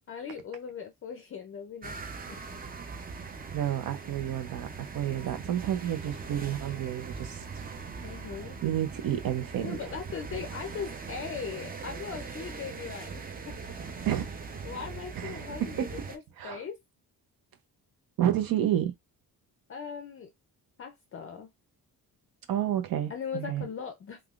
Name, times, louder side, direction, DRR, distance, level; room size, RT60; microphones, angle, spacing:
voice 1, 0.1-2.4 8.0-8.6 9.6-13.6 14.6-16.8 19.7-20.3 20.8-21.5 23.1-24.2, left 6 dB, 35° left, 0.5 m, -39 dB
sound 1, 1.8-16.2, right 5 dB, 25° right, 0.5 m, -41 dB
voice 2, 3.5-4.7 4.9-7.6 8.0-8.1 8.6-9.8 14.0-14.2 15.2-15.9 16.4-16.6 18.2-18.9 22.5-23.7, right 11 dB, 65° right, 0.7 m, -30 dB
3.4 x 2.4 x 2.4 m
cardioid pair, 135°, 37 cm